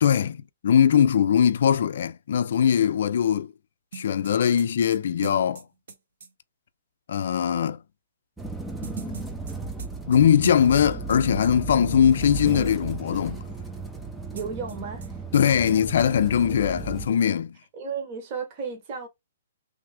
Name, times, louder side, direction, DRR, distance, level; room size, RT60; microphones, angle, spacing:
voice 1, 0.0-3.5 3.9-5.6 7.1-7.8 10.1-13.4 15.3-17.6, left 8 dB, 60° left, 0.4 m, -21 dB
sound 1, 3.9-6.3 8.8-11.2 11.4-11.5 14.4-15.1 15.3-15.4 15.7-16.1, right 7 dB, 65° right, 1.0 m, -41 dB
sound 2, 8.4-17.1, right 3 dB, 5° right, 0.4 m, -35 dB
voice 2, 14.3-15.2 17.7-19.1, right 5 dB, 30° right, 1.0 m, -34 dB
3.3 x 2.4 x 3.4 m
hypercardioid pair, 165°, 0 cm